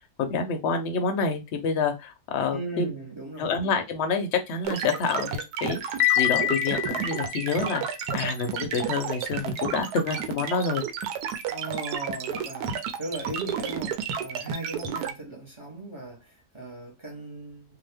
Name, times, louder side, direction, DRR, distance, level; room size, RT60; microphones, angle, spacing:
voice 1, 0.2-2.9 3.4-7.8 8.1-10.8 14.8-14.9, left 5 dB, 60° left, 0.8 m, -28 dB
voice 2, 2.5-3.5 11.5-17.8, right 2 dB, 25° right, 0.7 m, -38 dB
sound 1, 4.6-15.1, right 7 dB, 90° right, 1.1 m, -31 dB
Piano, 6.0-8.0, left 15 dB, 85° left, 1.1 m, -26 dB
2.8 x 2.2 x 3.3 m
omnidirectional pair, 1.6 m